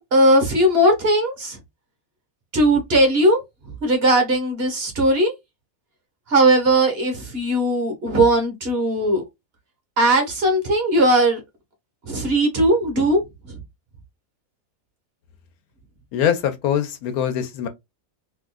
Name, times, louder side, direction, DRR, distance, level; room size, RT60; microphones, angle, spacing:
voice 1, 0.1-1.6 2.5-3.4 3.8-5.3 6.3-9.2 10.0-11.4 12.1-13.2 13.5-13.6, right 1 dB, 45° right, 1.3 m, -18 dB
voice 2, 16.1-17.7, left 9 dB, 80° left, 1.2 m, -23 dB
3.6 x 2.7 x 2.2 m
omnidirectional pair, 1.5 m